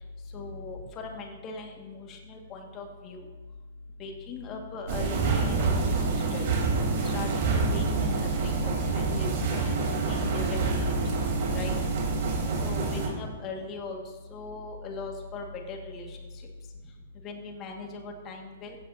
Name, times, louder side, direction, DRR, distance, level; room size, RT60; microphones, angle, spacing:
voice 1, 0.0-3.3 4.0-11.2 11.5-11.7 12.5-16.5 16.8-18.8, left 3 dB, 30° left, 2 dB, 2.0 m, -40 dB
sound 1, 4.9-13.1, right 3 dB, 45° right, 3.7 m, -27 dB
16.0 x 8.9 x 2.8 m, 1.4 s
figure-of-eight pair, 110°, 0 cm